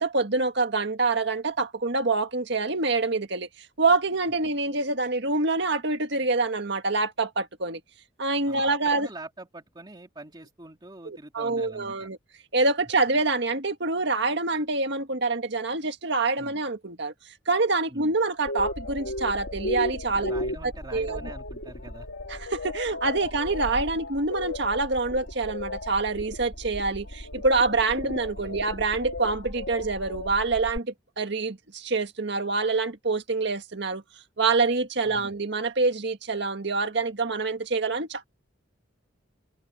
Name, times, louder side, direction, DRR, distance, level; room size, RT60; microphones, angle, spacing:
voice 1, 0.0-7.8 8.2-9.1 11.1-12.2 12.5-17.1 17.5-20.3 20.9-21.2 22.3-34.0 34.4-38.3, right 3 dB, 65° right, 1.9 m, -26 dB
voice 2, 8.5-12.1 16.4-16.5 17.9-18.1 20.2-22.1 28.0-28.6 35.0-35.3, right 2 dB, 25° right, 2.9 m, -45 dB
sound 1, 18.5-30.8, left 1 dB, 85° left, 3.4 m, -35 dB
head